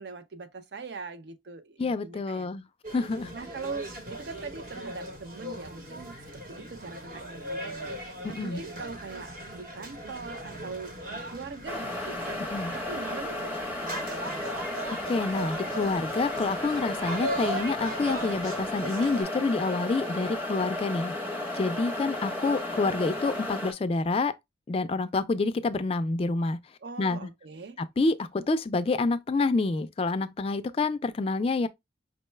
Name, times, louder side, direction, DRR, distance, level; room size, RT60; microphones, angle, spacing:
voice 1, 0.0-2.5 3.3-14.5 26.8-27.8, right 4 dB, 65° right, 0.5 m, -42 dB
voice 2, 1.8-2.6 2.9-3.3 8.2-8.6 12.5-12.7 15.1-21.1 21.5-24.3 24.7-26.6 27.0-27.3 27.8-31.7, left 3 dB, 30° left, 0.3 m, -28 dB
sound 1, 2.8-19.2, right 1 dB, 50° right, 1.1 m, -39 dB
sound 2, 11.7-23.7, left 1 dB, 10° right, 0.8 m, -34 dB
5.2 x 2.2 x 3.1 m
head